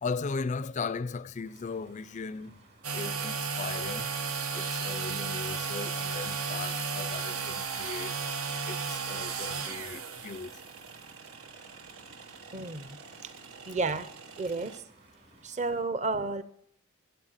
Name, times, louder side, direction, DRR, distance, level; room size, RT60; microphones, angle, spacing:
voice 1, 0.0-2.5 2.9-4.1 4.5-8.1 8.7-10.5, left 4 dB, 35° left, 0.4 m, -37 dB
Rain, 1.4-15.8, right 3 dB, 50° right, 3.9 m, -58 dB
sound 1, 2.8-14.8, right 5 dB, 85° right, 1.2 m, -35 dB
voice 2, 12.5-13.3 13.7-14.1 14.4-14.8 15.4-16.4, right 3 dB, 35° right, 0.7 m, -32 dB
13.0 x 7.7 x 6.5 m
head